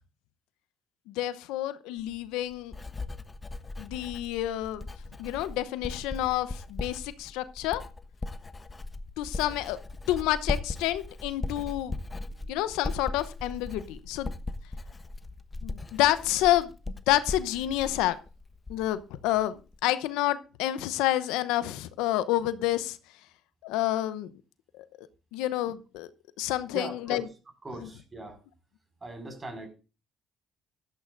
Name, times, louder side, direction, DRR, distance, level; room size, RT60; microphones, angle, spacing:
voice 1, 1.1-2.7 3.8-4.9 5.2-7.8 9.2-9.8 10.1-11.9 12.5-14.3 15.6-16.7 17.1-18.2 18.7-23.0 23.6-24.3 24.8-26.1 26.4-27.2, left 14 dB, 85° left, 14 dB, 0.8 m, -29 dB
Writing, 2.0-19.0 19.3-19.8, left 2 dB, 25° left, 1.1 m, -38 dB
voice 2, 26.7-27.2 27.6-28.4 29.0-29.7, right 2 dB, 30° right, 7 dB, 5.3 m, -40 dB
15.0 x 12.5 x 2.6 m, 0.32 s
supercardioid pair, 60°, 0 cm